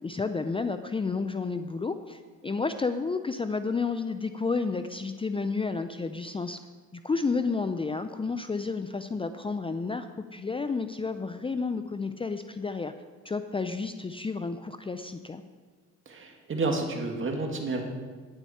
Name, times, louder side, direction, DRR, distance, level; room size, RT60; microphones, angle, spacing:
voice 1, 0.0-6.6 7.0-10.1 10.3-12.9 13.2-15.4, left 4 dB, 20° left, 9 dB, 0.5 m, -31 dB
voice 2, 16.1-17.8, right 3 dB, 40° right, 2 dB, 2.0 m, -30 dB
11.5 x 9.8 x 4.3 m, 1.5 s
cardioid pair, 90°, 30 cm